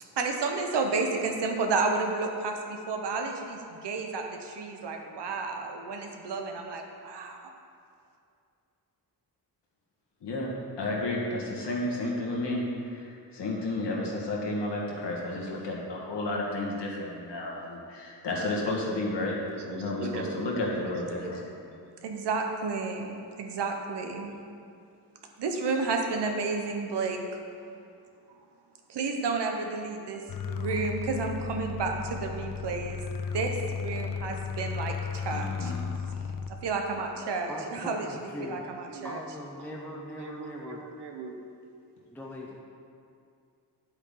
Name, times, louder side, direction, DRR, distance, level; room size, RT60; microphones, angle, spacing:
voice 1, 0.2-7.5 19.7-20.6 22.0-24.3 25.4-27.2 28.9-33.0 33.3-35.7 36.5-38.1 38.4-39.2 39.6-41.4, right 4 dB, 80° right, 3 dB, 1.1 m, -32 dB
voice 2, 10.8-19.4 19.6-21.4 35.3-35.9, left 2 dB, 90° left, -3 dB, 1.8 m, -32 dB
sound 1, 30.3-36.5, left 6 dB, 55° left, 0.6 m, -34 dB
voice 3, 37.5-38.7 39.0-41.1 42.1-42.6, left 1 dB, 5° left, -2 dB, 0.6 m, -41 dB
9.9 x 8.0 x 3.8 m, 2.4 s
wide cardioid pair, 140°, 41 cm